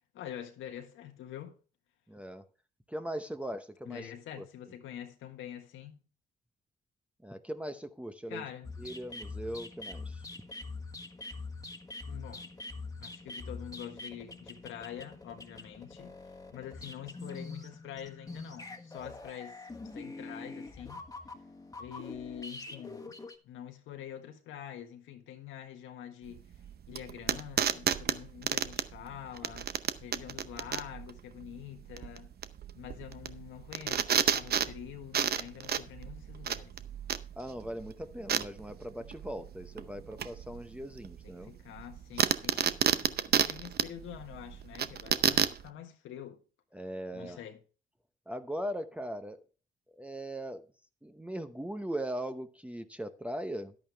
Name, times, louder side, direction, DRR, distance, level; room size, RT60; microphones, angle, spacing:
voice 1, 0.1-1.6 3.8-6.0 8.3-8.7 12.1-12.5 13.0-16.1 16.5-19.6 19.9-21.1 21.8-26.5 26.9-29.7 30.0-32.3 32.8-36.7 41.2-46.4 47.1-47.6, left 10 dB, 90° left, 1.6 m, -46 dB
voice 2, 2.1-2.4 2.9-4.1 4.4-4.5 7.2-8.4 8.8-10.2 37.4-41.5 46.7-47.4 48.3-49.4 49.9-50.6 51.0-53.7, right 1 dB, 5° right, 0.8 m, -39 dB
sound 1, 8.6-23.4, left 3 dB, 15° left, 1.5 m, -44 dB
sound 2, 26.3-45.7, right 8 dB, 55° right, 0.7 m, -32 dB
11.0 x 8.7 x 3.5 m
cardioid pair, 90°, 20 cm